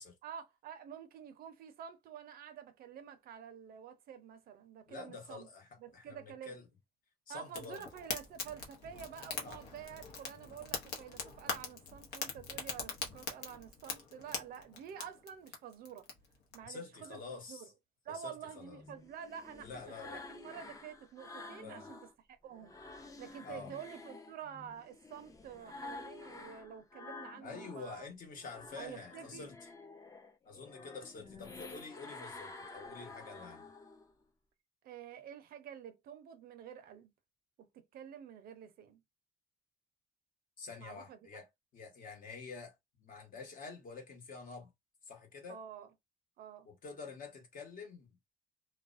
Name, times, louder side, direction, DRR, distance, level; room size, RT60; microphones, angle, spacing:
voice 1, 0.2-5.5 5.8-6.5 7.3-16.1 16.5-17.2 17.5-17.7 18.0-22.0 22.3-22.7 23.2-28.1 28.8-29.5 34.8-37.1 37.6-39.0 40.8-41.4 45.5-45.9 46.4-46.7, right 8 dB, 60° right, 0.6 m, -49 dB
voice 2, 4.9-5.7 5.9-6.7 7.3-7.8 9.4-9.7 16.6-17.7 18.1-18.8 19.6-20.2 21.6-21.9 23.4-23.7 27.4-29.5 30.4-33.7 40.6-41.5 41.7-44.7 45.1-45.6 46.6-48.1, left 4 dB, 55° left, 1.1 m, -48 dB
Fire, 7.5-16.6, left 5 dB, 75° left, 0.8 m, -43 dB
sound 1, 18.7-22.1 22.5-27.9 28.2-34.1, left 3 dB, 20° left, 0.5 m, -50 dB
2.4 x 2.1 x 2.4 m
cardioid pair, 110°, 17 cm